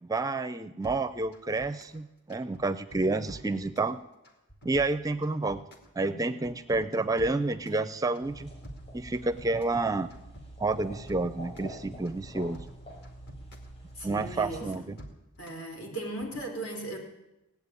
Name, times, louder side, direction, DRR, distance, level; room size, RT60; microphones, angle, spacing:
voice 1, 0.0-4.0 4.6-5.6 6.0-8.5 8.9-10.1 10.6-12.6 14.0-15.0, right 3 dB, 15° right, 12 dB, 0.5 m, -29 dB
sound 1, 0.8-2.0 2.3-3.9 4.2-5.9 6.2-7.8 8.1-9.8 10.1-11.7 12.1-13.7 14.0-15.6 16.0-16.4, equal, 50° left, 2.4 m, -48 dB
sound 2, 8.2-14.7, right 1 dB, 30° left, 5.9 m, -46 dB
voice 2, 14.0-14.7 15.4-17.0, right 1 dB, 70° left, 1 dB, 4.3 m, -37 dB
17.5 x 8.4 x 9.7 m, 0.94 s
head